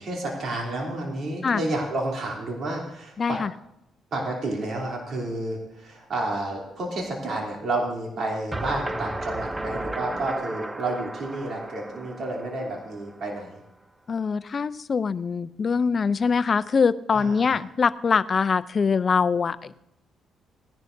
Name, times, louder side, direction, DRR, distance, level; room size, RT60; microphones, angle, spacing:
voice 1, 0.0-3.4 4.1-13.6 17.1-17.6, right 2 dB, 55° right, -1 dB, 3.2 m, -30 dB
voice 2, 3.2-3.5 14.1-19.7, left 5 dB, 40° left, 16 dB, 0.5 m, -23 dB
sound 1, 8.5-13.4, right 1 dB, 15° right, 0.6 m, -34 dB
18.0 x 11.0 x 2.7 m, 0.82 s
cardioid pair, 90°, 0 cm